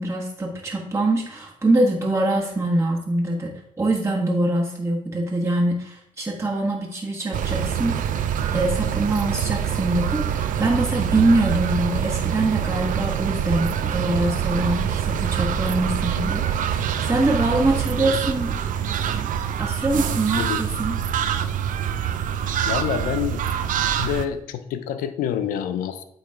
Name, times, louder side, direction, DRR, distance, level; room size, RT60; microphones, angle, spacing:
voice 1, 0.0-18.6 19.2-19.3 19.6-20.9, right 2 dB, 20° right, -2 dB, 1.4 m, -24 dB
sound 1, 7.3-24.3, right 9 dB, 70° right, 0.5 m, -25 dB
voice 2, 22.7-23.5 24.0-26.0, left 9 dB, 90° left, 11 dB, 0.5 m, -27 dB
8.5 x 3.2 x 3.7 m, 0.74 s
supercardioid pair, 55°, 14 cm